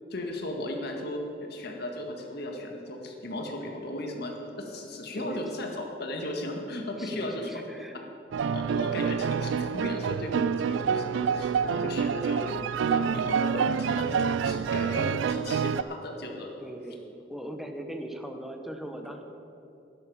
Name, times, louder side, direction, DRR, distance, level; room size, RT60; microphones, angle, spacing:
voice 1, 0.1-7.5 8.5-12.6 12.8-16.6, left 1 dB, 60° left, 2 dB, 1.8 m, -36 dB
voice 2, 7.0-7.9 16.6-17.0 17.3-19.2, right 1 dB, ahead, 4 dB, 1.0 m, -40 dB
sound 1, 8.3-15.8, right 6 dB, 85° right, 0.3 m, -27 dB
12.0 x 11.5 x 5.6 m, 2.9 s
head